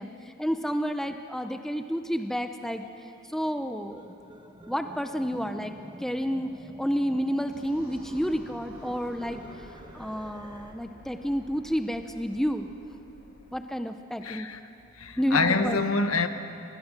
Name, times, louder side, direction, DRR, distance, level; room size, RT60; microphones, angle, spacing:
voice 1, 0.0-4.0 4.7-9.7 9.9-12.7 13.5-14.5 15.2-15.8, equal, ahead, 0.7 m, -30 dB
sound 1, 3.9-10.7, right 1 dB, 20° right, 1.3 m, -47 dB
sound 2, 7.5-13.6, equal, 45° left, 4.6 m, -51 dB
voice 2, 14.2-14.6 15.0-16.3, left 4 dB, 75° left, 1.3 m, -26 dB
27.0 x 21.0 x 7.5 m
head